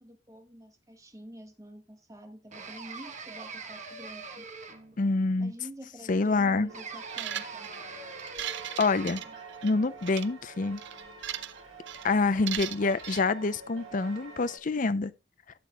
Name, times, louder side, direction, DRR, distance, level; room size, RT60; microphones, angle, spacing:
voice 1, 0.0-4.4 5.4-7.7, equal, 15° right, 1.5 m, -48 dB
sound 1, 2.5-5.1 6.7-9.4, right 4 dB, 35° right, 1.1 m, -43 dB
voice 2, 5.0-5.5 6.1-6.7 8.8-9.2 9.6-10.8 12.0-15.1, left 3 dB, 40° left, 0.5 m, -26 dB
sound 2, 6.7-14.6, right 4 dB, 80° right, 3.9 m, -47 dB
sound 3, 7.1-7.8 8.2-9.7 10.0-10.3 10.8-11.6 11.9-12.1 12.5-13.2, right 11 dB, 60° right, 0.6 m, -37 dB
12.0 x 8.4 x 2.3 m
head